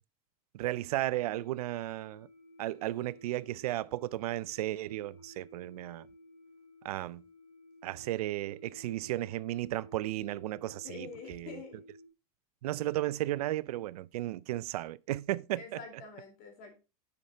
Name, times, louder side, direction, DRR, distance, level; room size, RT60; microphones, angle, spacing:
voice 1, 0.5-2.3 2.6-6.1 6.8-7.2 7.8-11.6 12.6-15.6, right 15 dB, 85° right, 0.5 m, -34 dB
sound 1, 1.1-12.1, equal, 70° left, 3.3 m, -55 dB
voice 2, 10.8-11.8 15.6-16.8, left 5 dB, 50° left, 3.8 m, -46 dB
8.2 x 5.8 x 4.0 m
supercardioid pair, 130°, 19 cm